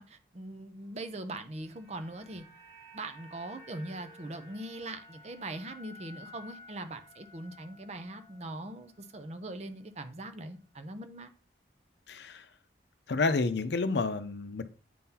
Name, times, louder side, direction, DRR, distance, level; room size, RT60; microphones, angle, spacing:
voice 1, 0.0-2.4 2.9-11.3, right 2 dB, 35° right, 0.6 m, -41 dB
sound 1, 1.2-9.5 9.8-10.0, left 1 dB, 20° left, 1.4 m, -54 dB
voice 2, 12.1-12.4 13.1-14.6, left 3 dB, 70° left, 0.6 m, -29 dB
9.2 x 3.8 x 2.8 m
head